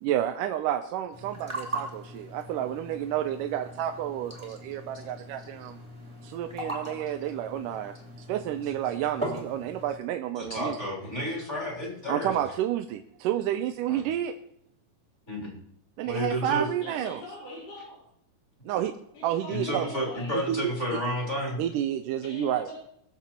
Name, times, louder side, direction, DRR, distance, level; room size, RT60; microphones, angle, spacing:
voice 1, 0.0-5.8 6.2-7.9 8.3-10.8 12.1-14.3 16.0-17.2 18.7-18.9 19.2-19.9 20.3-21.0 21.6-22.7, right 11 dB, 90° right, 6 dB, 2.3 m, -30 dB
sound 1, 1.1-10.0, right 1 dB, 10° right, 2.3 m, -39 dB
voice 2, 10.4-12.3 13.9-14.0 15.3-15.5 16.0-16.7 19.5-21.6, equal, 20° left, -1 dB, 3.6 m, -31 dB
voice 3, 16.8-18.0 19.1-20.4 22.2-22.7, left 1 dB, 85° left, -7 dB, 6.4 m, -42 dB
22.5 x 7.5 x 4.4 m, 0.72 s
omnidirectional pair, 3.7 m